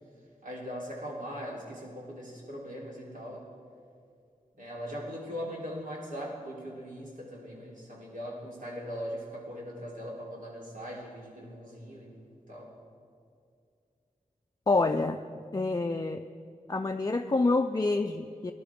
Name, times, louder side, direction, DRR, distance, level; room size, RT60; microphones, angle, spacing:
voice 1, 0.4-3.4 4.6-12.7, equal, 75° right, -4 dB, 3.4 m, -40 dB
voice 2, 14.7-15.2 15.5-16.2 16.7-18.5, left 3 dB, 25° left, 5 dB, 0.4 m, -27 dB
19.5 x 11.0 x 3.6 m, 2.4 s
wide cardioid pair, 85°, 14 cm